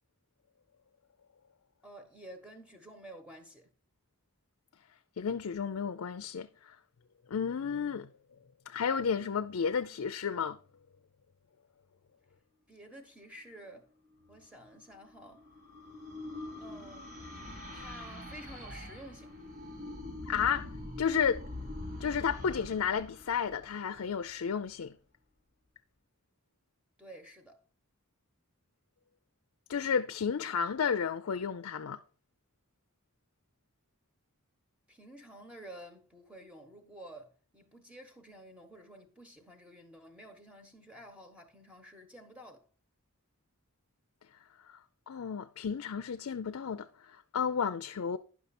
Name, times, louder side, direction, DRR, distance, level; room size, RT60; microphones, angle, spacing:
voice 1, 1.8-3.7 12.7-13.9 14.3-15.4 16.6-17.2 17.7-19.4 27.0-27.6 34.9-42.6, right 1 dB, 5° right, 1.2 m, -51 dB
voice 2, 5.2-6.8 7.3-8.1 8.7-10.6 20.3-20.7 21.0-21.4 22.0-24.9 29.7-32.0 44.7-44.8 45.1-48.2, left 6 dB, 75° left, 0.4 m, -32 dB
sound 1, 14.7-24.3, left 2 dB, 60° right, 4.5 m, -44 dB
10.5 x 5.9 x 4.2 m
head